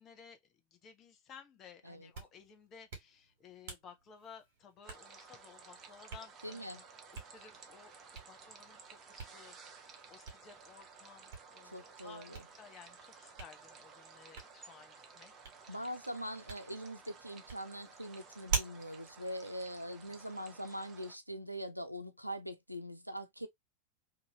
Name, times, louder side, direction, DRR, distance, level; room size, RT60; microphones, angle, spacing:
voice 1, 0.0-15.9, left 6 dB, 30° left, 0.8 m, -57 dB
Hands, 1.9-20.4, right 5 dB, 55° right, 1.4 m, -47 dB
sound 1, 4.8-21.1, right 5 dB, 25° right, 0.7 m, -55 dB
voice 2, 6.4-6.8 11.7-12.4 15.7-23.5, equal, 90° right, 0.4 m, -42 dB
2.7 x 2.6 x 2.7 m
figure-of-eight pair, 90°, 0 cm